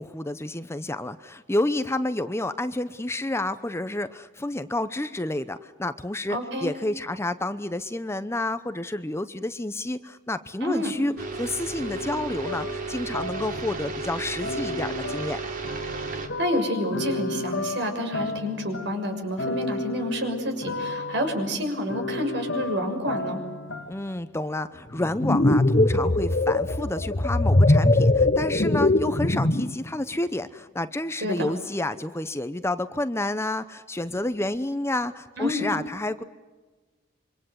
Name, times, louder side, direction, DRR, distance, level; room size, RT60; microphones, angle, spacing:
voice 1, 0.0-15.4 23.9-36.2, left 1 dB, 15° left, 11 dB, 0.8 m, -30 dB
voice 2, 6.3-6.7 10.6-10.9 16.1-23.4 31.2-31.5 35.4-35.7, equal, 65° right, 5 dB, 6.3 m, -29 dB
sound 1, 11.2-16.3, right 4 dB, 45° right, 3.1 m, -33 dB
sound 2, 11.8-14.0 14.4-24.2, left 2 dB, 85° left, 2.1 m, -34 dB
sound 3, 25.0-29.8, left 2 dB, 40° left, 1.0 m, -21 dB
26.5 x 24.5 x 8.0 m, 1.3 s
head